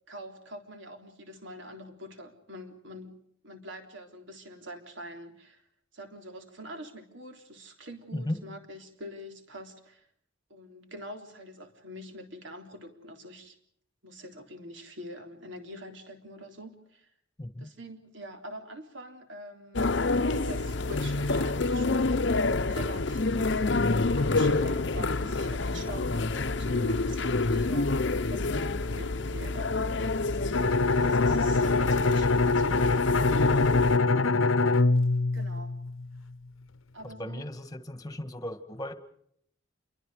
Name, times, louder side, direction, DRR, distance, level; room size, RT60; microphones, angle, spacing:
voice 1, 0.1-3.2 3.4-5.6 5.9-10.1 10.5-13.6 14.0-17.1 17.6-20.0 20.3-22.3 22.6-23.6 24.2-29.8 30.3-32.8 33.8-34.3 35.3-35.8 36.9-37.4, equal, 65° right, 3.7 m, -45 dB
voice 2, 17.4-17.7 37.0-38.9, left 1 dB, 20° left, 1.7 m, -36 dB
sound 1, 19.7-34.0, left 3 dB, 60° left, 0.8 m, -28 dB
Bowed string instrument, 30.5-36.2, left 3 dB, 85° left, 1.0 m, -24 dB
28.5 x 23.5 x 5.0 m
head